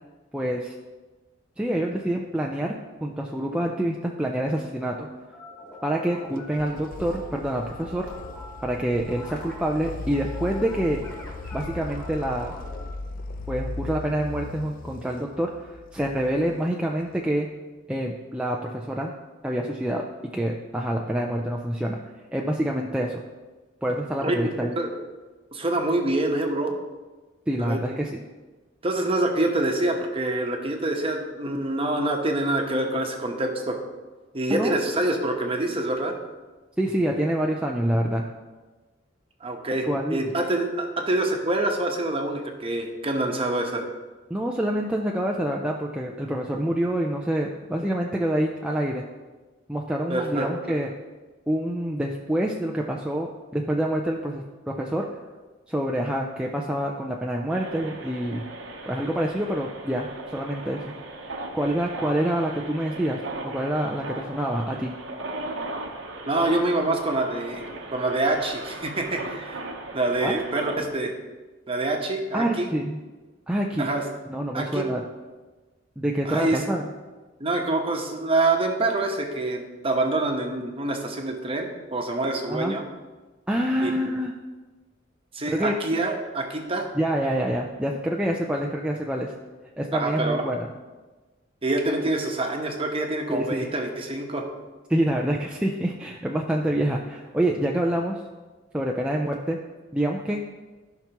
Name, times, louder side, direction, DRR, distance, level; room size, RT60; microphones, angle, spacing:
voice 1, 0.3-0.7 1.6-2.7 3.0-5.1 5.8-8.1 8.6-11.0 11.5-12.5 13.5-15.5 15.9-17.5 17.9-19.1 19.4-22.0 22.3-23.2 23.8-24.8 27.5-28.2 34.5-34.7 36.8-38.2 39.9-40.3 44.3-49.1 49.7-50.9 51.5-55.1 55.7-58.4 58.9-60.9 61.5-64.9 70.2-70.4 72.3-73.0 73.5-74.0 74.3-75.0 76.0-76.9 82.5-82.8 83.5-84.3 85.5-85.7 86.9-89.3 89.8-90.7 93.3-93.7 94.9-98.2 98.7-99.6 99.9-100.4, right 1 dB, 5° right, -1 dB, 0.5 m, -26 dB
sound 1, 5.3-12.9, left 1 dB, 10° left, 2.6 m, -43 dB
sound 2, 6.4-17.2, left 3 dB, 45° left, 0.5 m, -38 dB
voice 2, 25.5-26.7 27.6-27.8 28.8-33.8 34.3-36.1 39.4-43.8 50.1-50.5 66.3-67.6 67.9-69.6 69.9-71.1 71.7-72.7 73.8-74.0 74.5-74.8 76.2-76.7 77.4-82.8 83.8-83.9 85.3-86.9 89.9-90.4 91.6-94.4, right 2 dB, 30° right, 2 dB, 1.1 m, -26 dB
sound 3, 57.5-70.9, right 2 dB, 75° right, 1.0 m, -37 dB
14.5 x 5.9 x 3.0 m, 1.3 s
head